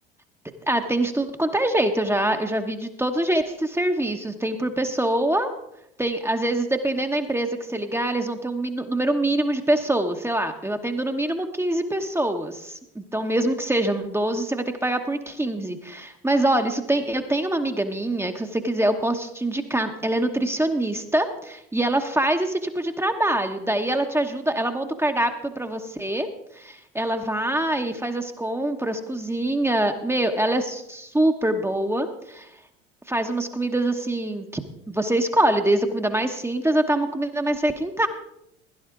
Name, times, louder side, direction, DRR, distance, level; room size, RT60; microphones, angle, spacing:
voice 1, 0.7-5.5 6.0-26.3 26.6-32.5 33.1-34.6 34.9-38.1, right 1 dB, 10° right, 5 dB, 1.1 m, -24 dB
16.0 x 11.5 x 3.8 m, 0.80 s
hypercardioid pair, 70°, 32 cm